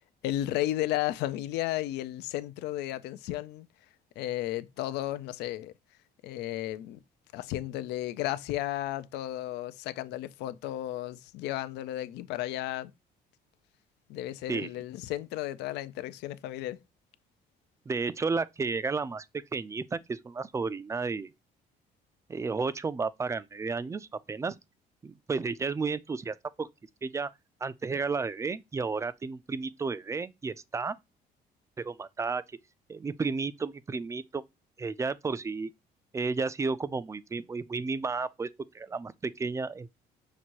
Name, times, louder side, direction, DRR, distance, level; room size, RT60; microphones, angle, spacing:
voice 1, 0.2-3.7 4.2-5.7 6.2-7.0 7.3-12.9 14.1-16.8, left 14 dB, 80° left, 0.4 m, -33 dB
voice 2, 17.9-19.3 19.5-21.3 22.3-24.5 25.0-26.7 27.0-27.3 27.6-30.9 31.8-32.4 32.9-34.4 34.8-35.7 36.1-38.5 38.7-39.9, right 4 dB, 15° right, 0.3 m, -32 dB
5.9 x 2.6 x 2.9 m
cardioid pair, 110°, 17 cm